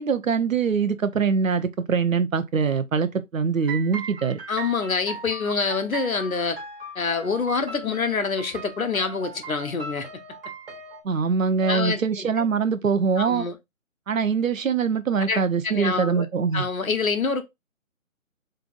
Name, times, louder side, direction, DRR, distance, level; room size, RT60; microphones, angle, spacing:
voice 1, 0.0-4.4 11.0-13.5 14.1-16.7, right 5 dB, 70° right, 0.8 m, -23 dB
sound 1, 3.6-11.0, right 4 dB, 40° right, 1.5 m, -39 dB
voice 2, 4.5-6.6 6.9-10.1 11.6-12.0 12.4-12.5 13.2-13.5 15.3-16.3 16.5-17.4, left 4 dB, 75° left, 1.3 m, -26 dB
5.2 x 3.4 x 2.5 m
figure-of-eight pair, 160°, 41 cm